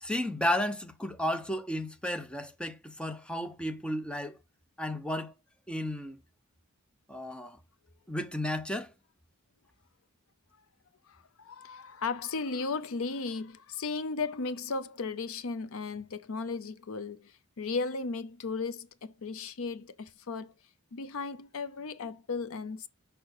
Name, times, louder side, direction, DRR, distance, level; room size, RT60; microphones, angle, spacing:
voice 1, 0.0-4.4 4.8-5.3 5.7-6.2 7.1-7.6 8.1-8.9, left 1 dB, 5° left, 0.7 m, -33 dB
voice 2, 11.1-20.5 20.9-22.9, left 4 dB, 65° left, 0.6 m, -35 dB
6.4 x 5.5 x 5.4 m
head